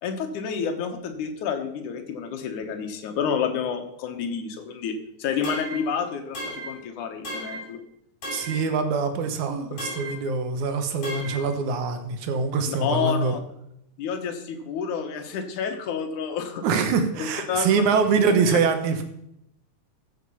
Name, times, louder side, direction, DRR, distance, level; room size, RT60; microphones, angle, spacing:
voice 1, 0.0-7.8 12.7-13.4 14.0-16.7 17.2-18.2 18.5-18.6, left 6 dB, 85° left, 5 dB, 2.7 m, -29 dB
sound 1, 5.4-5.9 6.3-6.8 7.2-7.7 8.2-8.7 9.8-10.2 11.0-11.5, equal, 45° left, 6.4 m, -35 dB
voice 2, 8.3-13.3 16.6-19.0, right 5 dB, 80° right, 8 dB, 2.6 m, -24 dB
14.5 x 6.7 x 5.6 m, 0.77 s
omnidirectional pair, 3.4 m